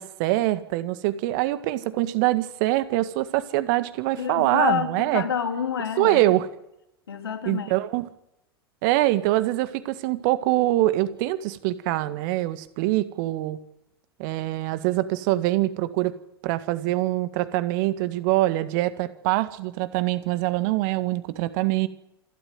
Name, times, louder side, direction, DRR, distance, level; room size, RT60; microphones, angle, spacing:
voice 1, 0.0-5.2 6.0-6.5 7.5-8.1 8.8-13.6 14.2-16.1 16.4-21.9, right 16 dB, 50° right, 13 dB, 1.8 m, -24 dB
voice 2, 4.2-6.4 7.1-7.7, left 7 dB, 75° left, 6 dB, 3.1 m, -28 dB
27.5 x 13.0 x 9.5 m, 0.85 s
figure-of-eight pair, 85°, 13 cm